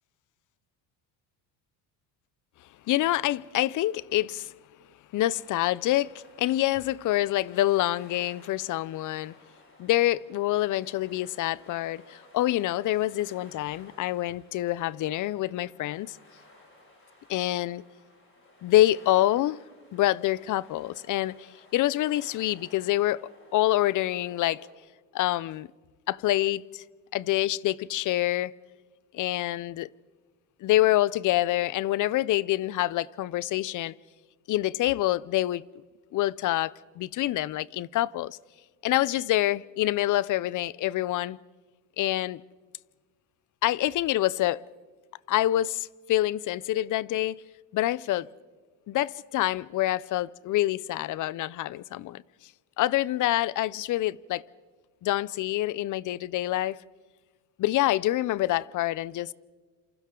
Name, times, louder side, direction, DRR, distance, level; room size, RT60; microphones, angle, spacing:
voice 1, 2.9-4.5 5.1-9.3 9.8-16.2 17.3-17.8 18.6-19.6 19.9-24.6 25.1-25.7 26.1-26.8 27.1-28.5 29.1-29.9 30.6-33.9 34.5-35.6 36.1-38.4 38.8-41.4 42.0-42.4 43.6-44.6 45.3-47.4 47.7-48.3 48.9-52.2 52.8-54.4 55.0-56.8 57.6-59.3, left 15 dB, 50° left, 0.6 m, -26 dB
sound 1, 5.2-24.7, left 2 dB, 30° left, 7.9 m, -56 dB
28.0 x 27.5 x 3.8 m
cardioid pair, 120°, 41 cm